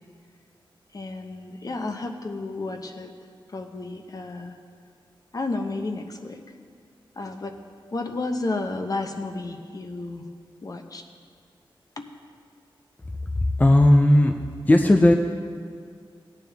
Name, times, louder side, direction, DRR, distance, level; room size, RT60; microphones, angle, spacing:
voice 1, 0.9-3.1 3.5-4.6 5.3-6.4 7.2-7.6 7.9-10.3 10.6-11.0 12.0-12.1, left 2 dB, 45° left, 5 dB, 0.9 m, -32 dB
voice 2, 13.4-14.3 14.6-15.1, left 1 dB, 20° left, 3 dB, 0.5 m, -16 dB
17.0 x 9.3 x 3.5 m, 2.2 s
wide cardioid pair, 105°, 9 cm